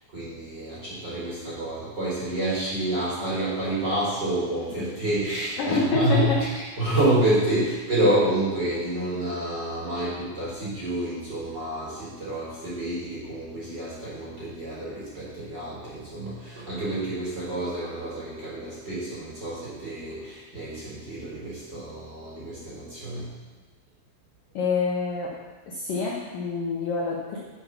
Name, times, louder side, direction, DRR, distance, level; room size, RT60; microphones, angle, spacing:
voice 1, 0.0-6.5 6.8-23.3, right 1 dB, 25° right, -9 dB, 3.4 m, -28 dB
voice 2, 5.6-6.4 24.5-25.3 25.7-27.4, left 4 dB, 70° left, -3 dB, 2.1 m, -26 dB
9.1 x 8.0 x 5.9 m, 1.3 s
omnidirectional pair, 5.7 m